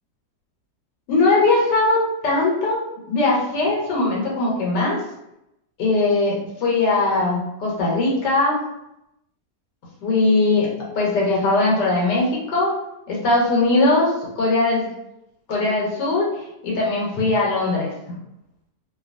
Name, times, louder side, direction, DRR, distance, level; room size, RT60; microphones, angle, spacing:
voice 1, 1.1-2.8 3.1-5.0 5.8-8.6 10.0-10.7 10.9-12.7 13.1-14.9 15.5-16.3 16.6-17.9, left 2 dB, 80° left, -4 dB, 1.4 m, -20 dB
2.9 x 2.5 x 2.4 m, 0.85 s
omnidirectional pair, 1.8 m